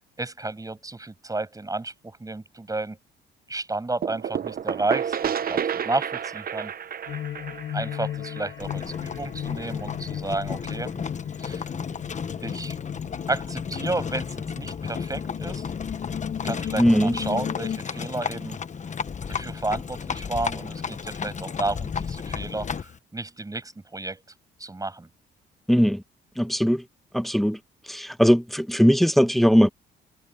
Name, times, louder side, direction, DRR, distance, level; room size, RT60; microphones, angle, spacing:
voice 1, 0.2-3.0 3.5-6.7 7.7-10.9 11.4-11.7 12.4-12.8 13.3-15.7 16.4-18.6 19.3-24.2 24.6-25.1, right 2 dB, 15° right, 7.1 m, -32 dB
sound 1, 4.0-9.6, right 8 dB, 50° right, 0.9 m, -31 dB
sound 2, 7.1-17.8, left 10 dB, 60° left, 1.7 m, -36 dB
Livestock farm animals working animals, 8.6-23.0, left 6 dB, 35° left, 1.2 m, -33 dB
voice 2, 16.8-17.2 25.7-26.0 26.4-26.8 27.1-27.6 27.9-29.7, equal, ahead, 1.3 m, -19 dB
cardioid pair, 90°, 20 cm